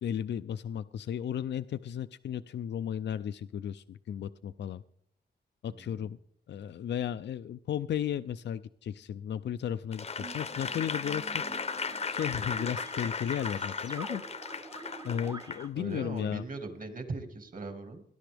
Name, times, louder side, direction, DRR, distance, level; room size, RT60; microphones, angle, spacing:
voice 1, 0.0-4.8 5.6-6.2 6.5-11.4 11.7-14.2 15.0-16.4, left 9 dB, 80° left, 13 dB, 0.4 m, -34 dB
voice 2, 5.7-6.1 15.7-18.0, right 3 dB, 50° right, 6 dB, 1.9 m, -40 dB
Applause / Crowd, 9.9-15.6 16.2-16.3, left 5 dB, 35° left, 0.6 m, -36 dB
sound 1, 10.2-15.7, right 3 dB, 20° right, 0.7 m, -46 dB
19.0 x 11.5 x 3.4 m, 0.67 s
wide cardioid pair, 150°, 18 cm